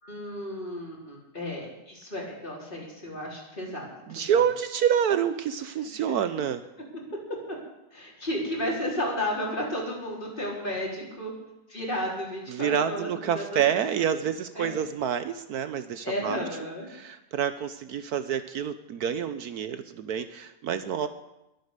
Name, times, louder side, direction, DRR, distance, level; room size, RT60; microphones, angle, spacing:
voice 1, 0.0-4.4 7.5-7.6 7.9-11.3 11.7-13.6 14.1-14.2 14.6-14.8 16.0-16.9, left 1 dB, 30° left, -3 dB, 4.3 m, -33 dB
voice 2, 4.1-6.6 12.5-16.4 16.9-21.1, right 8 dB, 70° right, 11 dB, 1.2 m, -28 dB
22.0 x 8.4 x 6.7 m, 0.93 s
omnidirectional pair, 1.8 m